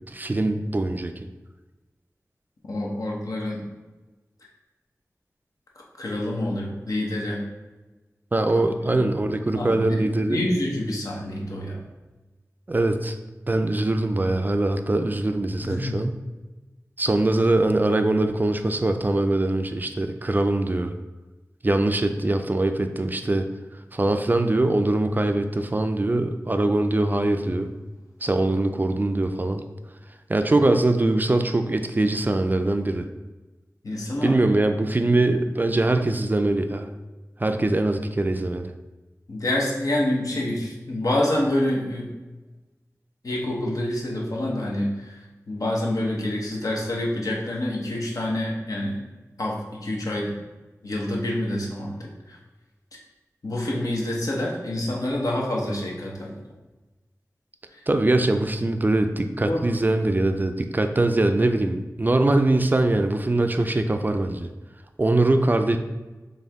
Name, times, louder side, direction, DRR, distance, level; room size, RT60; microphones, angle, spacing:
voice 1, 0.1-1.1 8.3-10.4 12.7-13.1 13.5-16.2 17.0-20.9 21.6-23.4 23.9-27.7 28.2-29.6 30.3-33.1 34.2-36.9 37.4-38.7 57.9-64.5 65.0-65.8, right 2 dB, 30° right, 7 dB, 0.3 m, -22 dB
voice 2, 2.7-3.6 6.0-7.4 9.5-11.8 15.6-16.0 33.8-34.3 39.3-42.1 43.2-45.1 45.5-49.0 49.4-50.3 50.8-51.9 52.3-52.4 53.4-56.4 59.4-59.6, left 1 dB, 70° left, -2 dB, 1.0 m, -27 dB
4.3 x 3.4 x 3.5 m, 1.2 s
wide cardioid pair, 65°, 6 cm